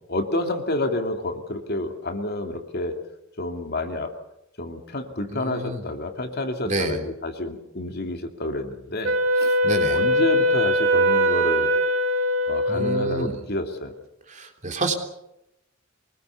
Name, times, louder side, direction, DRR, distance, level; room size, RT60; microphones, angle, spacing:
voice 1, 0.1-3.0 3.4-4.1 4.6-9.6 9.9-11.7 12.5-13.9, left 2 dB, 50° left, 5 dB, 2.6 m, -29 dB
voice 2, 5.3-5.8 6.6-7.0 9.6-10.0 12.7-13.3 14.3-14.9, right 2 dB, 40° right, 4 dB, 3.3 m, -28 dB
Wind instrument woodwind instrument, 9.0-13.4, equal, 70° right, 3.4 m, -21 dB
24.5 x 20.0 x 7.1 m, 0.86 s
head